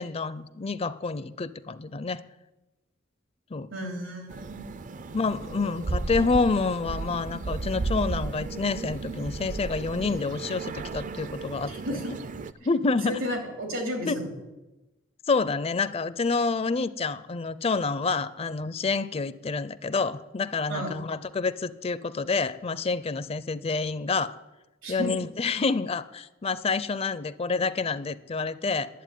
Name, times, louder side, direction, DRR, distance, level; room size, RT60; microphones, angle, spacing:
voice 1, 0.0-2.2 3.5-3.7 5.1-12.0 12.6-13.2 14.0-14.2 15.3-24.3 24.9-28.9, left 4 dB, 30° left, 16 dB, 0.4 m, -28 dB
voice 2, 3.7-4.6 11.7-12.1 13.0-14.3 20.7-20.9 24.8-25.1, equal, 90° right, 3 dB, 3.2 m, -32 dB
sound 1, 4.3-12.5, right 3 dB, 40° right, 0.5 m, -34 dB
11.0 x 7.9 x 9.2 m, 1.0 s
head